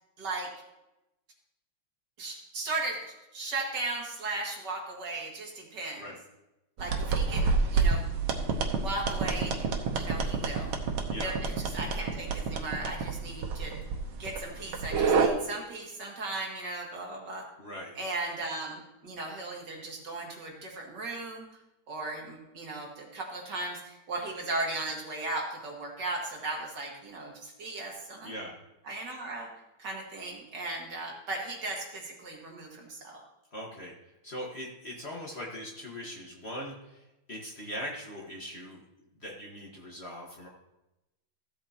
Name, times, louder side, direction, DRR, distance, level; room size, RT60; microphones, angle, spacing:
voice 1, 0.2-0.5 2.2-6.0 6.8-8.1 8.8-9.7 9.9-10.7 11.2-13.7 14.2-17.5 18.0-21.6 21.9-28.3 28.8-29.5 29.8-33.2, right 2 dB, 55° right, 0 dB, 2.3 m, -37 dB
sound 1, 6.8-15.3, right 4 dB, 85° right, 1.8 m, -29 dB
voice 2, 17.6-17.9 28.2-28.6 33.5-33.9 34.2-38.8 39.2-40.5, equal, 35° left, -2 dB, 1.6 m, -40 dB
15.0 x 8.0 x 2.9 m, 0.95 s
omnidirectional pair, 2.2 m